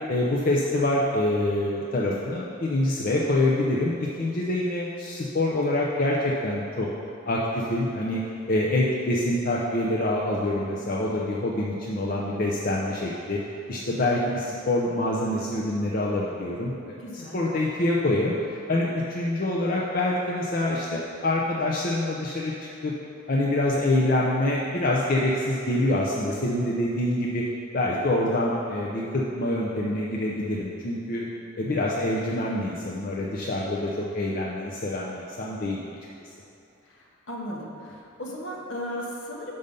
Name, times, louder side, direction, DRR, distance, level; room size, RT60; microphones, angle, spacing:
voice 1, 0.1-6.9 7.2-8.2 8.5-13.4 13.7-22.5 22.8-22.9 23.3-27.4 27.7-31.3 31.6-35.8, left 1 dB, 45° left, -4 dB, 0.6 m, -26 dB
voice 2, 17.0-17.4 37.3-39.5, equal, 70° left, -2 dB, 1.2 m, -35 dB
6.7 x 5.4 x 5.3 m, 2.6 s
head